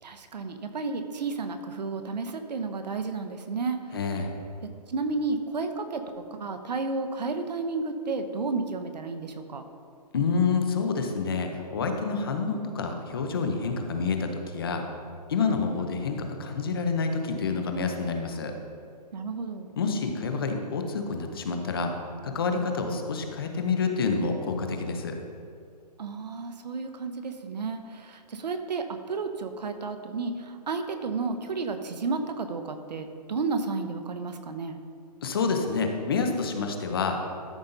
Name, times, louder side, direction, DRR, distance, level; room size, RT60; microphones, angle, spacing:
voice 1, 0.0-4.0 4.6-6.0 6.3-9.6 19.1-19.7 26.0-34.8, right 4 dB, 80° right, 7 dB, 1.0 m, -32 dB
voice 2, 3.9-4.3 10.1-14.8 15.3-18.5 19.8-21.9 22.2-25.2 35.2-37.2, left 4 dB, 35° left, 5 dB, 0.8 m, -28 dB
13.0 x 5.6 x 3.9 m, 2.3 s
hypercardioid pair, 175°, 21 cm